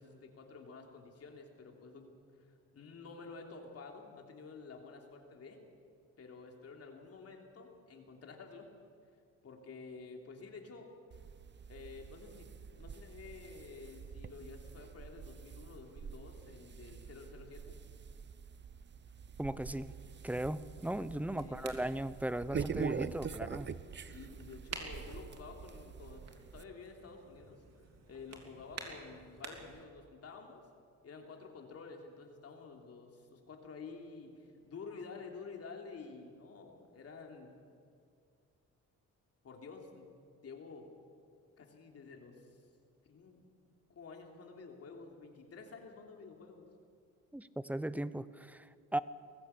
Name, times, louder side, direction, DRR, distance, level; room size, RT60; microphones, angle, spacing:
voice 1, 0.0-2.1 2.4-5.6 6.2-8.7 9.4-10.9 11.7-12.5 12.8-17.7 21.3-21.8 24.1-26.2 26.5-27.6 28.1-30.6 31.0-37.6 39.4-40.1 40.4-40.9 41.6-42.5 43.1-43.4 43.9-46.7, left 4 dB, 50° left, 2 dB, 3.3 m, -50 dB
sound 1, 11.1-26.6, right 6 dB, 35° right, 0.8 m, -45 dB
voice 2, 19.4-19.9 20.2-23.7 47.3-48.7 48.9-49.0, right 1 dB, 5° right, 15 dB, 0.7 m, -37 dB
sound 2, 20.5-29.8, right 4 dB, 60° right, 3.2 m, -52 dB
22.0 x 15.0 x 8.3 m, 2.3 s
cardioid pair, 90°, 30 cm